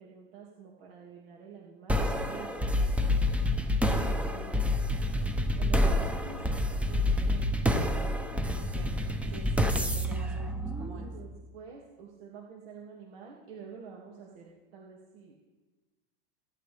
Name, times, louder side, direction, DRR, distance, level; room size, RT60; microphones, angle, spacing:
voice 1, 0.0-3.3 4.3-4.8 5.6-7.5 11.0-15.4, right 6 dB, 75° right, -2 dB, 2.3 m, -48 dB
sound 1, 1.9-11.3, left 1 dB, 5° right, 0.7 m, -28 dB
voice 2, 8.5-11.1, right 3 dB, 55° right, -2 dB, 4.9 m, -48 dB
23.0 x 11.0 x 3.4 m, 1.2 s
supercardioid pair, 140°, 30 cm